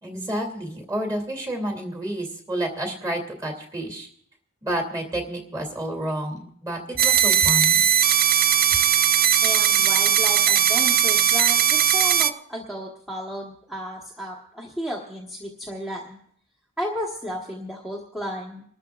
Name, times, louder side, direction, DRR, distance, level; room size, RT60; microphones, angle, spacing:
voice 1, 0.0-4.1 4.6-7.8, right 1 dB, 20° right, 2 dB, 2.8 m, -30 dB
sound 1, 7.0-12.3, right 9 dB, 45° right, 0.4 m, -19 dB
voice 2, 9.4-16.2 16.8-18.6, equal, ahead, -3 dB, 1.4 m, -33 dB
29.0 x 13.0 x 2.5 m, 0.64 s
head